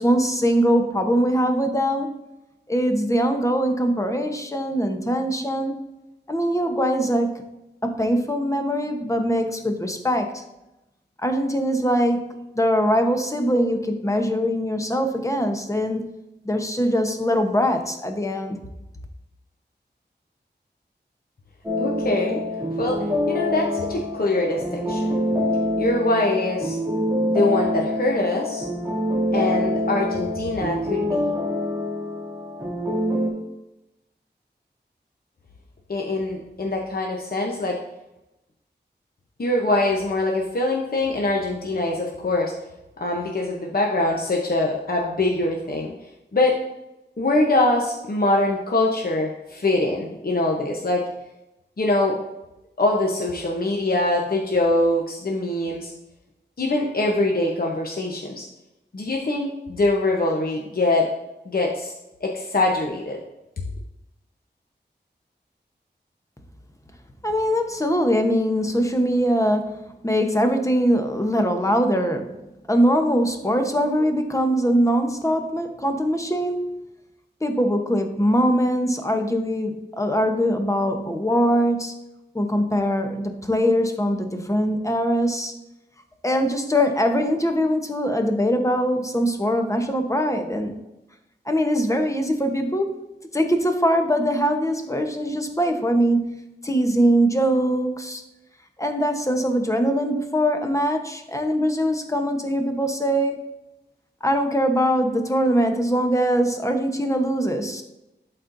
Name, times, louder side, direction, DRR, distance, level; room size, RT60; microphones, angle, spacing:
voice 1, 0.0-2.1 2.7-5.8 6.3-7.4 7.8-10.4 11.2-16.0 16.4-18.6 67.2-72.4 72.7-76.7 77.4-81.9 82.3-85.5 86.2-90.8 91.5-93.0 93.3-96.3 96.6-98.2 98.8-103.5 104.2-107.8, equal, 15° left, 5 dB, 0.9 m, -22 dB
sound 1, 21.6-33.3, left 1 dB, 15° right, 2.1 m, -25 dB
voice 2, 21.8-22.4 22.8-25.1 25.8-26.8 27.2-28.7 29.3-31.3 35.9-37.8 39.4-42.5 43.0-45.9 46.3-46.6 47.2-51.0 51.8-52.1 52.8-55.9 56.6-58.4 58.9-61.1 61.5-61.9 62.2-63.2 63.6-63.7, left 2 dB, 55° left, -1 dB, 0.9 m, -23 dB
11.5 x 4.3 x 2.6 m, 0.94 s
wide cardioid pair, 60°, 19 cm